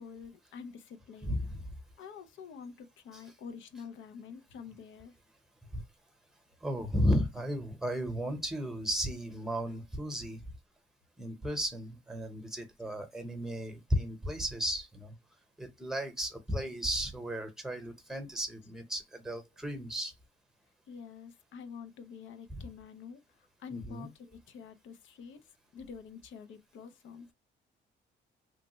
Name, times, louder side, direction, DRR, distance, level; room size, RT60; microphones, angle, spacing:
voice 1, 0.0-1.4 2.0-5.1 20.9-23.2 23.6-27.3, left 6 dB, 75° left, 0.6 m, -47 dB
voice 2, 1.2-1.6 3.1-3.2 5.7-5.8 6.6-10.4 11.2-15.1 15.6-20.1 22.6-22.7 23.7-24.1, equal, ahead, 0.9 m, -34 dB
3.1 x 2.1 x 3.0 m
cardioid pair, 90°, 20 cm